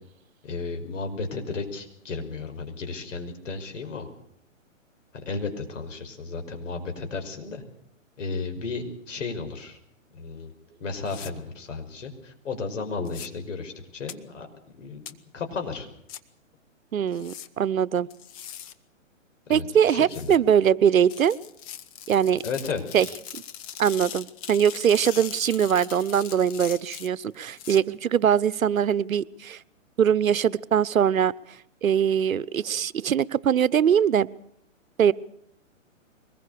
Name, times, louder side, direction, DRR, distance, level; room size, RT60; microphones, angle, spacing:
voice 1, 0.4-4.1 5.1-7.6 8.2-9.8 10.1-10.5 10.8-14.5 14.8-15.0 15.3-15.9 19.5-20.4 22.4-22.8, left 4 dB, 65° left, 5 dB, 5.7 m, -33 dB
sound 1, 11.1-11.3 13.0-13.3 14.1-14.2 15.1-15.2 16.1-16.2 17.1-17.5 18.1-18.7 20.1-20.4 21.1-27.8, left 9 dB, 25° left, 1.1 m, -40 dB
voice 2, 16.9-18.1 19.5-21.4 22.1-22.4 22.9-23.1 23.3-23.4 23.8-29.6 30.0-31.3 31.8-34.3 35.0-35.1, right 8 dB, 85° right, 19 dB, 1.0 m, -22 dB
23.5 x 20.5 x 6.8 m, 0.73 s
hypercardioid pair, 150°, 40 cm